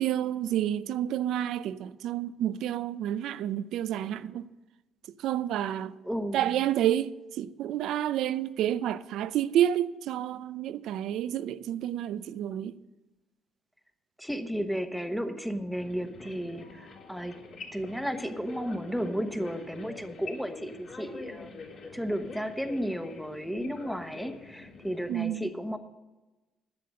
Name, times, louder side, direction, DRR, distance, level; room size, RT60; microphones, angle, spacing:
voice 1, 0.0-4.5 5.2-5.9 6.3-12.8 25.1-25.4, right 11 dB, 80° right, 0.5 m, -29 dB
voice 2, 6.0-6.6 14.2-17.4 17.7-21.5 21.9-25.8, equal, ahead, 1.1 m, -33 dB
sound 1, 15.7-25.2, left 4 dB, 60° left, 3.2 m, -45 dB
10.5 x 7.6 x 7.6 m
cardioid pair, 95°, 0 cm